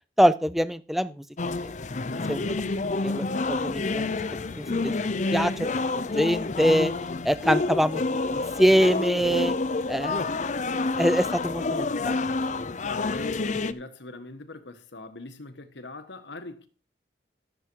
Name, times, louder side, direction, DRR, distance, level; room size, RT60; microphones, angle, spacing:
voice 1, 0.2-1.2 1.6-1.7 2.3-2.5 3.0-4.1 4.6-4.9 5.3-5.5 5.8-6.9 7.2-8.0 8.3-9.5 9.9-10.5 11.0-12.2, equal, ahead, 0.5 m, -24 dB
sound 1, 1.4-13.7, left 3 dB, 40° left, 0.6 m, -28 dB
voice 2, 12.8-16.7, left 2 dB, 80° left, 1.4 m, -41 dB
13.5 x 7.4 x 4.6 m
head